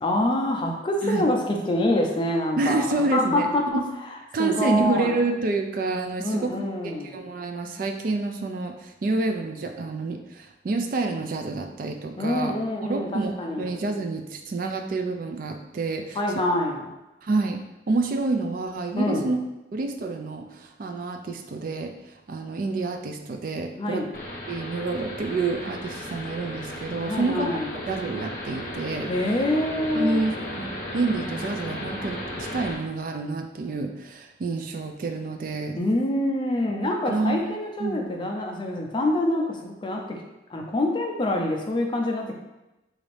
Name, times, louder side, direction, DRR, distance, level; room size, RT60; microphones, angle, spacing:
voice 1, 0.0-5.2 6.2-7.2 12.1-13.8 16.1-16.9 19.0-19.4 23.7-24.1 27.0-27.7 29.1-30.2 35.8-40.2 40.5-42.3, left 1 dB, 25° left, 2 dB, 0.4 m, -26 dB
voice 2, 2.6-3.8 4.3-6.6 7.1-12.5 12.9-16.2 17.2-17.6 17.9-19.4 19.7-21.9 22.3-24.1 24.5-27.5 27.9-29.1 29.9-35.8 37.1-37.4 37.8-38.0, right 3 dB, 50° right, 5 dB, 0.3 m, -28 dB
sound 1, 24.1-32.7, left 1 dB, 50° left, 0.9 m, -35 dB
4.0 x 2.5 x 3.2 m, 0.99 s
head